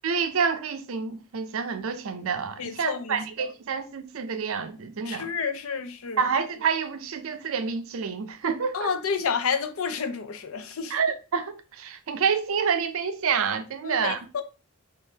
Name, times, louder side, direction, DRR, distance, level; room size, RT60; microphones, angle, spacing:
voice 1, 0.0-5.3 6.2-8.9 10.9-14.2, right 6 dB, 65° right, 0.5 m, -28 dB
voice 2, 2.6-3.5 5.0-6.2 8.7-11.0 13.8-14.4, left 6 dB, 70° left, 0.5 m, -30 dB
3.6 x 3.5 x 2.7 m
head